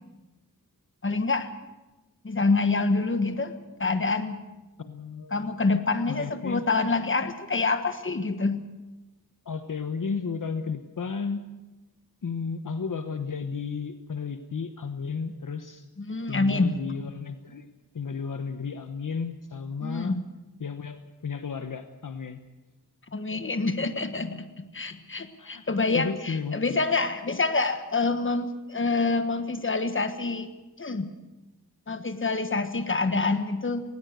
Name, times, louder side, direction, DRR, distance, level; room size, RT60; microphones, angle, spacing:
voice 1, 1.0-1.5 2.2-3.5 3.8-4.4 5.3-8.6 16.0-16.7 19.8-20.2 23.1-30.5 30.8-31.1 31.9-33.8, left 3 dB, 30° left, 9 dB, 1.4 m, -26 dB
voice 2, 4.8-5.5 6.1-6.6 9.4-11.4 12.2-15.9 16.3-17.7 17.9-20.2 20.6-22.4 25.4-26.8, left 5 dB, 55° left, 9 dB, 1.0 m, -33 dB
19.5 x 18.0 x 8.1 m, 1.1 s
wide cardioid pair, 115°, 37 cm